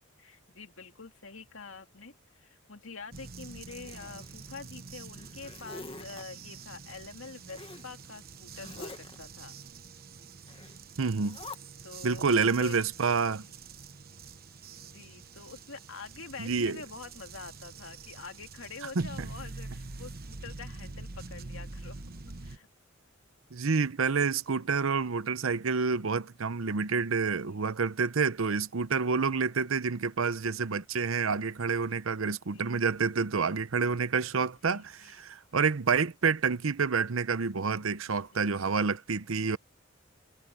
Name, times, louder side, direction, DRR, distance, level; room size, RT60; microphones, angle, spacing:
voice 1, 0.2-9.5 11.8-12.7 13.4-13.6 14.8-22.0 22.4-22.7 27.2-27.7 32.5-32.9 34.6-35.3 38.0-38.8, left 4 dB, 70° left, 2.4 m, -46 dB
sound 1, 3.1-22.6, right 4 dB, 45° right, 1.0 m, -46 dB
Zipper (clothing), 3.7-4.7 5.1-6.2 7.5-7.9 8.5-9.2 10.5-10.8 11.2-11.6, left 3 dB, 25° left, 1.5 m, -46 dB
voice 2, 11.0-11.4 12.0-13.4 16.4-16.8 19.0-19.3 23.5-39.6, right 5 dB, 80° right, 0.8 m, -28 dB
head